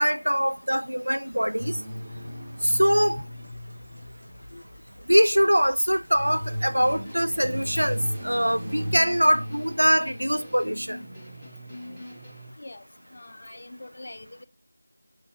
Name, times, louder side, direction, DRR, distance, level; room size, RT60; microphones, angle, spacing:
voice 1, 0.0-1.8 2.6-3.2 5.1-11.0, equal, 90° right, 0.4 m, -23 dB
sound 1, 1.6-5.0 5.9-10.7, equal, 30° right, 0.8 m, -36 dB
sound 2, 3.3-8.4, equal, 65° right, 1.5 m, -51 dB
sound 3, 6.7-12.5, equal, ahead, 0.9 m, -43 dB
voice 2, 13.1-14.4, left 2 dB, 40° left, 0.4 m, -44 dB
4.2 x 3.4 x 2.9 m
figure-of-eight pair, 170°, 0 cm